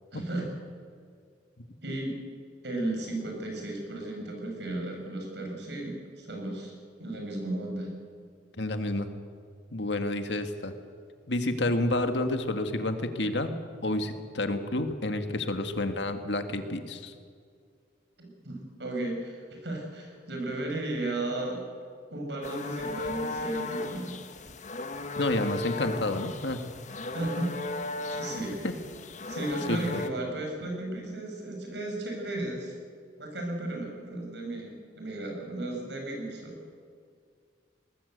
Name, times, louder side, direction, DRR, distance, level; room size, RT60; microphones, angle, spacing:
voice 1, 0.1-0.5 1.8-2.2 2.6-6.7 7.0-7.9 18.2-21.6 22.1-24.2 27.1-27.6 28.1-28.7 29.3-32.7 33.2-36.7, right 2 dB, 70° right, 1 dB, 7.0 m, -34 dB
voice 2, 8.6-9.1 9.7-10.7 11.3-17.1 25.2-26.6 28.6-28.7 29.7-30.0, left 2 dB, 75° left, 7 dB, 2.0 m, -29 dB
sound 1, 22.4-30.1, left 2 dB, 45° left, 1.4 m, -36 dB
22.5 x 19.5 x 8.2 m, 2.2 s
head